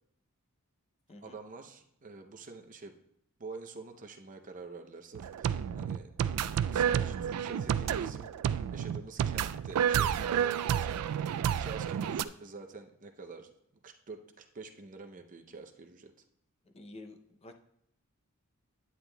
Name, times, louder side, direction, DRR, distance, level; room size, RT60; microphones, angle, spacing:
voice 1, 1.2-3.0 3.4-6.1 6.7-8.3 8.7-13.5 13.8-16.1, right 4 dB, 35° right, 5 dB, 0.6 m, -47 dB
sound 1, 5.1-12.2, right 9 dB, 90° right, 0.3 m, -30 dB
voice 2, 16.7-17.5, left 2 dB, 30° left, 5 dB, 0.5 m, -49 dB
9.5 x 8.9 x 2.2 m, 0.75 s
head